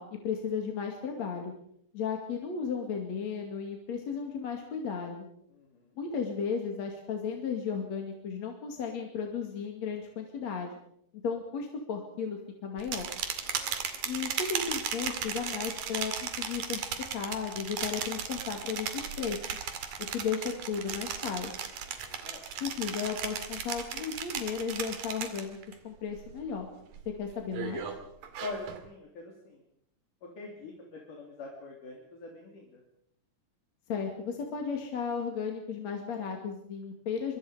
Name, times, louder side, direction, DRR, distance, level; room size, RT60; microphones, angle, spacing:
voice 1, 0.0-1.5 1.9-5.2 6.0-10.7 11.2-13.1 14.0-16.8 17.1-19.4 20.0-21.5 22.6-26.7 27.2-28.0 33.9-37.4, left 6 dB, 55° left, 2 dB, 3.4 m, -34 dB
voice 2, 5.5-6.0 13.4-13.8 21.8-22.4 28.4-29.6 30.2-32.8, left 3 dB, 70° left, -1 dB, 4.7 m, -44 dB
sound 1, 12.8-25.7 26.1-26.5 26.9-28.8, right 7 dB, 90° right, 3.9 m, -36 dB
25.5 x 24.0 x 5.1 m, 0.72 s
omnidirectional pair, 3.8 m